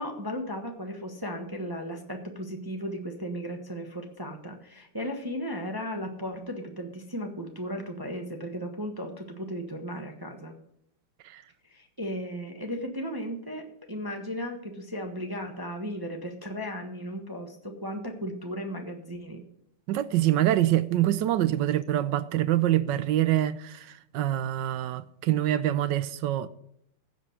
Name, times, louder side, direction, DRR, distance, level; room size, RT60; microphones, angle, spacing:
voice 1, 0.0-10.5 11.7-19.4, equal, 15° right, 0.9 m, -35 dB
voice 2, 19.9-23.9 24.1-26.5, right 13 dB, 70° right, 1.1 m, -25 dB
16.0 x 5.3 x 6.6 m
omnidirectional pair, 2.4 m